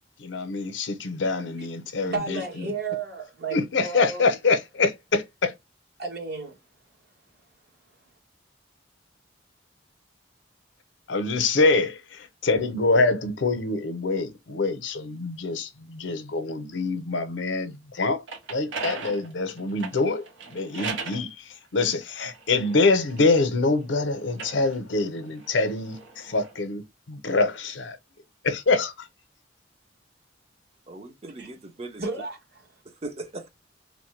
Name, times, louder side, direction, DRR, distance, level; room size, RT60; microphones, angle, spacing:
voice 1, 0.2-2.7 3.5-5.5 11.1-18.2 18.5-20.3 20.5-21.3 21.7-26.8 27.1-28.0 28.4-28.9, left 3 dB, 75° left, 0.6 m, -25 dB
voice 2, 2.0-4.3 6.0-6.5 31.4-31.5 32.0-32.4, right 4 dB, 55° right, 1.2 m, -32 dB
Inserting Vhs tape, 18.0-21.3 22.0-23.7 24.2-26.5, right 4 dB, 90° right, 0.9 m, -38 dB
voice 3, 30.9-32.1 32.8-33.5, right 2 dB, 35° right, 0.6 m, -39 dB
3.1 x 2.1 x 3.0 m
head